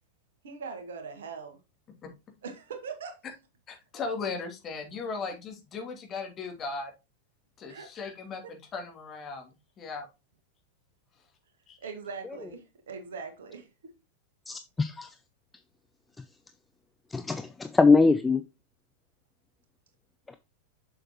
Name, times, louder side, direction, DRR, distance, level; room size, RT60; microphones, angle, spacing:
voice 1, 0.4-1.6 2.4-3.2 7.7-7.9 8.4-8.5 11.8-13.9, right 5 dB, 60° right, 1.8 m, -41 dB
voice 2, 3.7-6.9 7.6-9.5 9.8-10.1 11.7-11.8, left 4 dB, 25° left, 2.6 m, -37 dB
voice 3, 14.5-15.1 17.1-18.4, left 4 dB, 10° left, 0.5 m, -22 dB
7.7 x 6.6 x 3.0 m
figure-of-eight pair, 90°, 0 cm